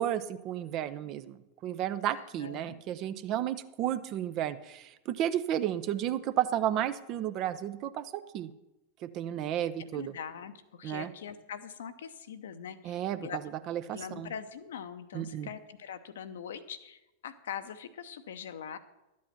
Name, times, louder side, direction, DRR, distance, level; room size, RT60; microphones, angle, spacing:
voice 1, 0.0-8.5 9.0-10.1 10.8-11.1 12.8-13.2 13.7-14.3 15.1-15.5, right 11 dB, 40° right, 13 dB, 0.7 m, -32 dB
voice 2, 2.1-2.8 9.8-13.5 13.9-18.8, left 8 dB, 60° left, 10 dB, 0.8 m, -43 dB
12.5 x 8.5 x 5.9 m, 0.96 s
figure-of-eight pair, 90°, 0 cm